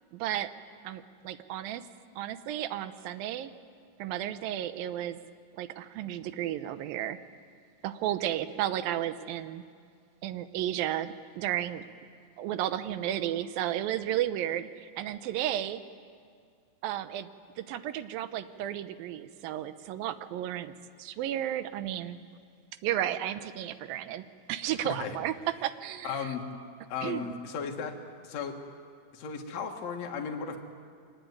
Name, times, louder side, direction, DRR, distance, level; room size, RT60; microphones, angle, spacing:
voice 1, 0.1-0.5 0.8-1.9 2.2-3.5 4.0-5.2 5.5-7.2 7.8-9.6 10.2-11.9 12.4-15.8 16.8-17.3 17.6-22.2 22.8-26.3 27.0-27.4, right 12 dB, 80° right, 12 dB, 2.6 m, -33 dB
voice 2, 24.8-25.2 26.0-26.4 26.9-28.0 28.2-28.6 29.1-30.6, left 6 dB, 55° left, 2 dB, 2.6 m, -35 dB
24.5 x 19.0 x 9.5 m, 2.2 s
omnidirectional pair, 4.2 m